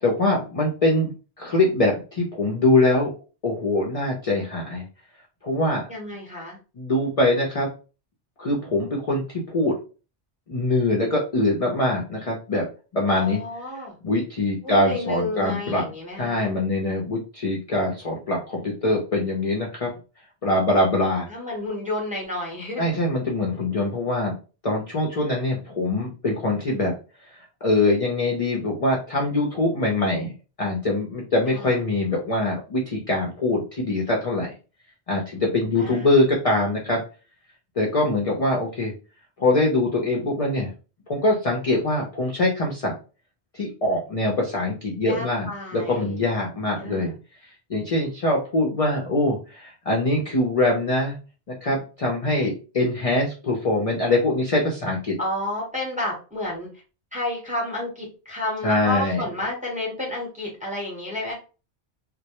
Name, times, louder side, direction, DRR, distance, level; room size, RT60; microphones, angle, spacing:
voice 1, 0.0-1.1 1.4-3.1 3.4-4.9 5.4-5.8 6.8-7.7 8.4-9.8 10.5-12.7 12.9-13.4 14.0-15.9 16.2-19.9 20.4-21.3 22.8-24.3 24.6-26.9 27.6-30.3 30.6-34.5 35.1-37.0 37.8-38.9 39.4-40.7 41.1-42.9 43.5-47.1 47.7-51.2 51.5-55.2 58.6-59.2, left 2 dB, 45° left, -1 dB, 0.5 m, -23 dB
voice 2, 5.9-6.6 13.1-14.0 14.6-16.5 21.3-23.0 31.5-31.8 35.7-36.1 45.0-46.2 46.7-47.2 55.2-56.7 57.1-61.3, left 1 dB, 10° right, -2 dB, 0.7 m, -31 dB
2.1 x 2.0 x 2.8 m, 0.34 s
omnidirectional pair, 1.1 m